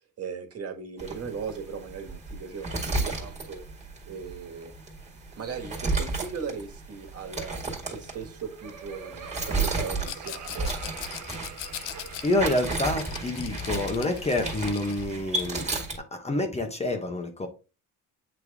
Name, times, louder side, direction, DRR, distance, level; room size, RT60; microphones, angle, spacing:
voice 1, 0.2-3.6 4.1-4.7 5.4-7.6 7.9-10.7, right 6 dB, 45° right, 4 dB, 1.6 m, -38 dB
sound 1, 1.0-16.0, right 3 dB, 20° right, 1.9 m, -33 dB
Laughter, 8.2-13.3, right 7 dB, 60° right, 1.2 m, -45 dB
Rattle, 10.0-15.1, left 11 dB, 70° left, 0.7 m, -40 dB
voice 2, 12.2-15.7 16.1-17.5, left 2 dB, 20° left, 5 dB, 1.0 m, -28 dB
8.2 x 3.3 x 3.5 m, 0.31 s
cardioid pair, 115°, 33 cm